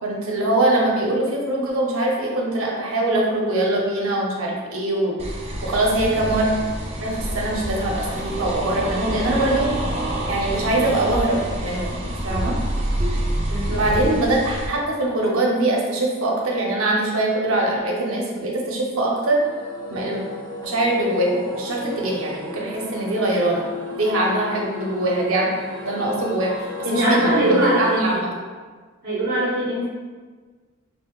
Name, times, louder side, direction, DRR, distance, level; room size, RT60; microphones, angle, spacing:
voice 1, 0.0-5.2 5.6-6.5 7.0-9.7 10.3-12.0 12.2-12.6 13.7-19.4 19.9-20.2 20.6-23.6 24.0-25.5 25.8-28.3, right 1 dB, 75° right, -2 dB, 0.7 m, -22 dB
sound 1, 5.2-14.7, right 1 dB, 30° right, 0.4 m, -27 dB
voice 2, 13.5-14.2 26.8-28.2 29.0-29.9, right 1 dB, 45° right, -10 dB, 0.9 m, -22 dB
sound 2, 19.4-28.1, left 2 dB, 15° left, 0.7 m, -34 dB
5.6 x 2.1 x 2.3 m, 1.5 s
head